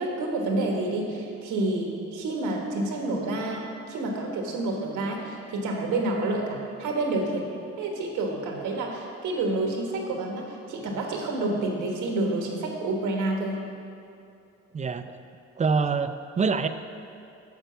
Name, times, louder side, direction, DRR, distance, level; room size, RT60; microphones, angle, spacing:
voice 1, 0.0-7.5 7.8-13.6, right 2 dB, 90° right, 1 dB, 1.4 m, -29 dB
voice 2, 14.7-15.2 15.6-16.7, right 5 dB, 25° right, 10 dB, 0.4 m, -25 dB
8.2 x 4.7 x 6.8 m, 2.5 s
cardioid pair, 90°, 30 cm